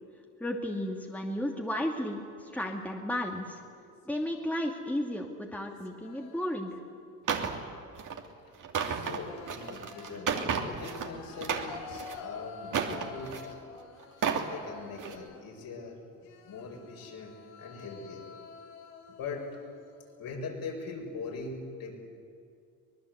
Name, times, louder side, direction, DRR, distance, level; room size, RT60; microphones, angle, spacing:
voice 1, 0.4-3.6 4.1-6.7, left 1 dB, 5° left, 1 dB, 2.5 m, -33 dB
sound 1, 3.7-4.5 5.5-6.8 7.1-7.8 8.8-15.7 16.2-20.5, left 5 dB, 80° left, 2.5 m, -50 dB
sound 2, 7.3-7.6 8.0-8.2 8.6-11.1 11.4-12.2 12.7-13.5 14.0-14.5 14.9-15.2, right 6 dB, 45° right, 2.9 m, -32 dB
voice 2, 8.8-13.6 14.5-16.0 16.4-18.3 19.2-19.6 20.2-22.0, left 4 dB, 55° left, 0 dB, 6.7 m, -41 dB
24.0 x 20.0 x 8.2 m, 2.3 s
supercardioid pair, 80°, 41 cm